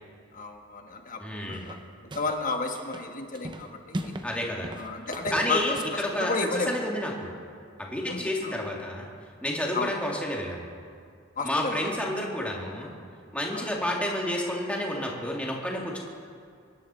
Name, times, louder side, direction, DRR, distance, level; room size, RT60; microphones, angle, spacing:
voice 1, 0.3-1.8 2.1-4.1 4.7-6.7 8.1-8.6 9.7-9.9 11.4-11.9 13.5-13.7, left 3 dB, 45° left, 4 dB, 1.4 m, -32 dB
voice 2, 1.2-1.7 4.2-4.7 5.3-7.4 7.8-9.1 9.4-10.7 11.4-12.9 13.3-16.0, left 1 dB, 5° left, -2 dB, 2.3 m, -30 dB
sound 1, 1.5-2.5 2.7-4.3 4.6-6.0, right 1 dB, 25° right, 0.8 m, -38 dB
24.0 x 11.0 x 4.4 m, 2.3 s
head